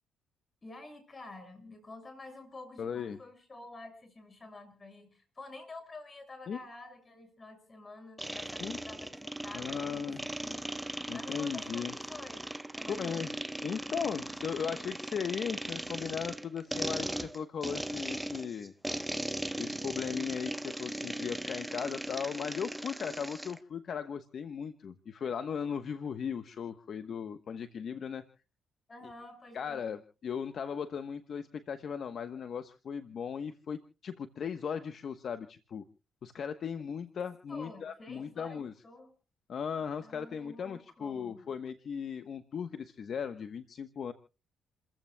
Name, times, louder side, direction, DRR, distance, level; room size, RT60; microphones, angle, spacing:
voice 1, 0.6-10.6 11.1-12.5 12.8-13.3 28.9-29.8 37.5-39.1 40.0-41.4, left 2 dB, 30° left, 7 dB, 6.5 m, -49 dB
voice 2, 2.8-3.2 6.5-6.6 8.6-8.8 9.5-10.3 11.1-11.9 12.9-13.3 13.6-18.7 19.6-28.2 29.5-35.8 36.2-38.7 39.5-44.1, left 7 dB, 55° left, 10 dB, 1.1 m, -37 dB
sound 1, 8.2-23.6, right 1 dB, 5° right, 1.0 m, -38 dB
30.0 x 15.0 x 2.3 m, 0.36 s
cardioid pair, 90°, 0 cm